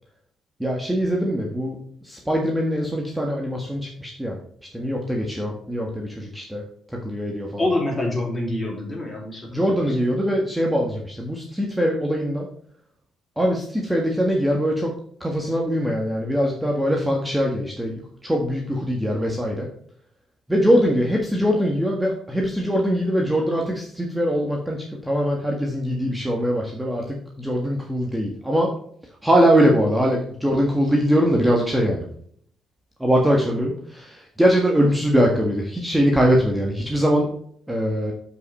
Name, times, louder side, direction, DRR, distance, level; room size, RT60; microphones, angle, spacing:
voice 1, 0.6-4.4 4.7-6.6 7.0-7.7 9.5-12.5 13.4-14.9 15.2-19.7 20.5-28.7 29.2-32.1 33.0-37.3 37.7-38.1, equal, 5° right, 0 dB, 1.6 m, -22 dB
voice 2, 7.6-10.0, left 2 dB, 20° left, -1 dB, 3.7 m, -26 dB
7.8 x 5.7 x 4.2 m, 0.62 s
cardioid pair, 90°, 0 cm